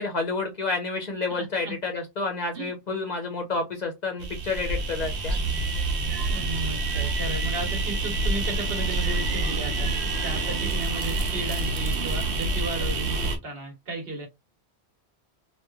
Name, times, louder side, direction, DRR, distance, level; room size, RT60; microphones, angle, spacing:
voice 1, 0.0-5.4, left 3 dB, 50° left, 0.6 m, -29 dB
voice 2, 1.4-1.7 2.5-2.7 6.2-9.9 10.2-14.3, right 2 dB, 65° right, 1.2 m, -34 dB
sound 1, 4.2-13.4, right 2 dB, 90° right, 0.9 m, -27 dB
2.9 x 2.2 x 2.3 m
omnidirectional pair, 1.1 m